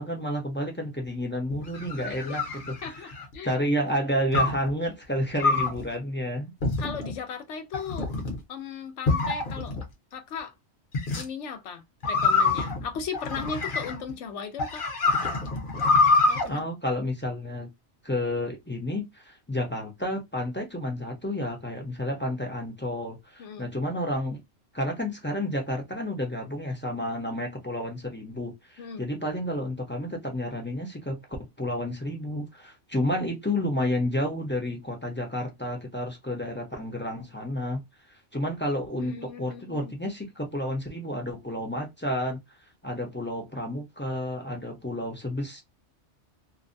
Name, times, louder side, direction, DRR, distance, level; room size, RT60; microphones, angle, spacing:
voice 1, 0.0-3.1 3.4-6.5 16.5-17.7 18.0-24.4 24.7-31.2 31.6-37.8 38.3-42.4 42.8-45.6, left 1 dB, 15° left, 0.5 m, -30 dB
sound 1, 1.5-3.3 4.3-4.7 5.4-5.8 6.6-7.1 7.7-8.4 9.1-9.8 10.9-11.2 12.0-14.1 14.6-16.4, left 3 dB, 50° left, 0.9 m, -25 dB
voice 2, 2.1-2.4 2.8-3.6 6.8-8.1 8.5-9.8 10.1-10.5 11.2-14.9 16.3-16.6 23.4-23.7 28.8-29.0 38.9-39.9, left 6 dB, 80° left, 0.9 m, -37 dB
2.6 x 2.1 x 2.5 m
omnidirectional pair, 1.2 m